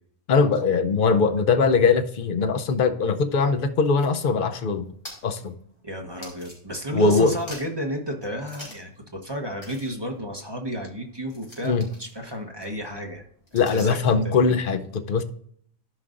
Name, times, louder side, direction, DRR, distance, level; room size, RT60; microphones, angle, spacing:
voice 1, 0.3-4.9 5.2-5.5 6.9-7.3 11.6-11.9 13.5-15.2, left 4 dB, 50° left, 8 dB, 0.8 m, -21 dB
sound 1, 3.7-7.0 7.3-7.9 8.4-9.0 9.2-9.3 9.6-14.1, equal, 20° left, 3.1 m, -47 dB
voice 2, 5.8-13.2 13.5-14.0 14.2-14.4, equal, 20° right, 2 dB, 1.0 m, -32 dB
13.0 x 5.3 x 2.5 m, 0.63 s
omnidirectional pair, 1.3 m